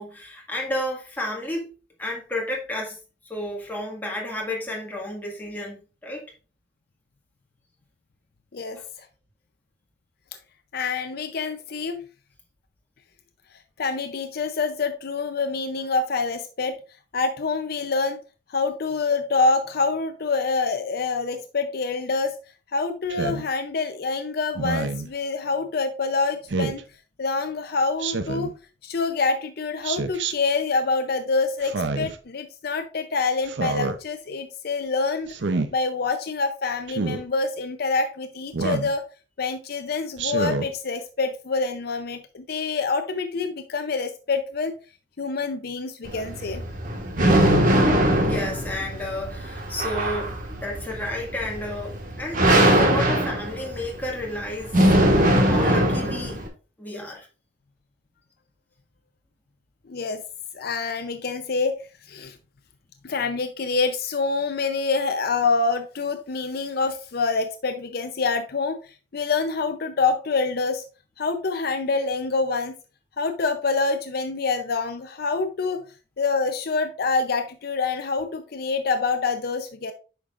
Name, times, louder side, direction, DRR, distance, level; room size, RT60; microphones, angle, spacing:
voice 1, 0.0-1.7 2.0-3.0 3.2-5.8 6.0-6.2 8.7-8.8 48.2-56.4 56.8-57.3, left 1 dB, 10° left, 1.8 m, -31 dB
voice 2, 10.7-12.0 13.8-16.8 17.1-18.2 18.5-22.4 22.7-26.8 27.2-28.5 28.8-35.3 35.7-39.0 39.4-44.7 45.2-46.6 59.9-60.2 60.5-61.8 62.1-62.4 63.0-70.8 71.2-72.7 73.2-75.8 76.2-79.9, left 4 dB, 60° left, 0.6 m, -26 dB
Speech synthesizer, 23.1-23.4 24.6-25.1 26.5-26.8 28.0-28.5 29.8-30.3 31.6-32.2 33.5-34.0 35.3-35.7 36.9-37.2 38.5-38.9 40.2-40.7, right 3 dB, 70° right, 0.6 m, -27 dB
sound 1, 46.0-56.5, right 1 dB, 50° right, 1.6 m, -21 dB
8.5 x 5.9 x 2.5 m
head